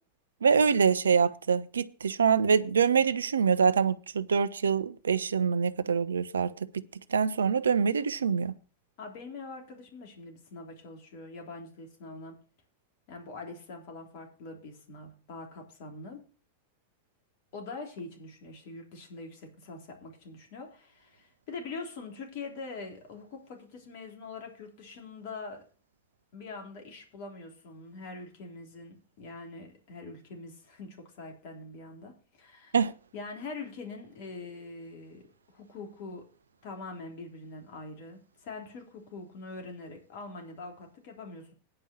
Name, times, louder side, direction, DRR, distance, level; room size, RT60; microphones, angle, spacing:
voice 1, 0.4-6.8 7.1-8.5 32.7-32.9, right 6 dB, 70° right, 0.6 m, -25 dB
voice 2, 9.0-12.4 13.1-16.3 17.5-25.7 26.3-32.8 33.1-36.3 36.6-41.5, left 3 dB, 50° left, 3.3 m, -43 dB
9.9 x 5.4 x 8.2 m
figure-of-eight pair, 90°, 0 cm